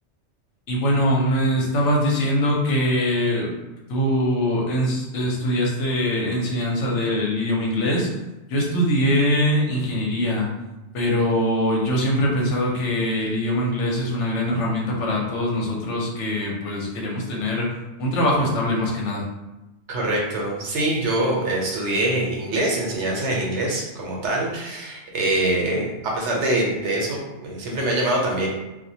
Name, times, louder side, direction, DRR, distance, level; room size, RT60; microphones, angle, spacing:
voice 1, 0.7-3.5 3.9-8.1 8.5-10.5 10.9-19.2, equal, 80° left, -2 dB, 1.0 m, -22 dB
voice 2, 19.9-28.5, right 1 dB, 75° right, -2 dB, 0.9 m, -24 dB
2.3 x 2.1 x 2.6 m, 1.0 s
omnidirectional pair, 1.2 m